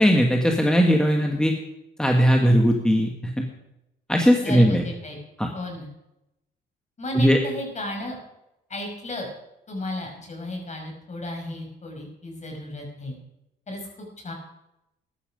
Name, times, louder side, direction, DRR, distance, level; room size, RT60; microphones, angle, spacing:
voice 1, 0.0-1.5 2.0-3.5 4.1-4.8 5.4-5.5 7.1-7.4, equal, 5° left, 2 dB, 1.7 m, -19 dB
voice 2, 4.4-5.2 5.5-5.9 7.0-8.2 8.7-9.3 9.7-13.2 13.7-13.8 14.2-14.3, left 1 dB, 35° left, 1 dB, 5.8 m, -33 dB
14.5 x 11.5 x 5.2 m, 0.89 s
cardioid pair, 90°, 20 cm